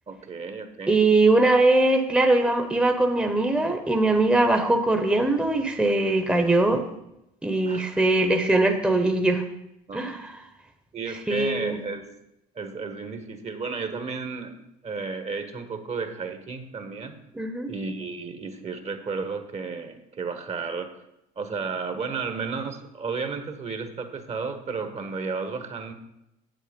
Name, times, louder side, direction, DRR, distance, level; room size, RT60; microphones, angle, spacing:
voice 1, 0.1-1.0 7.6-8.0 9.9-10.2 10.9-12.1 12.5-14.5 14.8-17.1 17.7-20.9 21.4-25.9, right 4 dB, 35° right, 8 dB, 1.4 m, -33 dB
voice 2, 0.9-6.8 7.4-9.4 9.9-10.3 11.3-11.8 17.3-17.7, right 2 dB, 5° right, 5 dB, 1.1 m, -21 dB
8.5 x 7.6 x 5.3 m, 0.87 s
hypercardioid pair, 70°, 19 cm